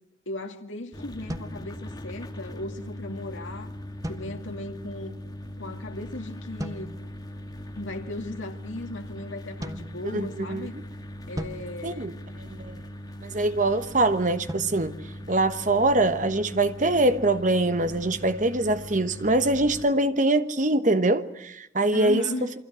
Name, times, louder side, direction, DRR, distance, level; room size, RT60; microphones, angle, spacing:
voice 1, 0.3-3.7 4.1-5.1 5.6-6.9 7.7-10.7 11.3-12.1 21.9-22.5, left 2 dB, 75° left, 2.1 m, -37 dB
sound 1, 0.9-19.9, equal, 20° left, 2.0 m, -40 dB
sound 2, 1.3-2.4 4.0-4.8 6.6-7.3 9.6-10.7 11.4-12.8 14.5-16.0, equal, 15° right, 1.1 m, -40 dB
voice 2, 10.1-10.7 11.8-12.1 12.4-12.8 13.2-15.0 15.3-22.5, right 2 dB, 40° right, 1.2 m, -23 dB
28.5 x 24.5 x 6.3 m
head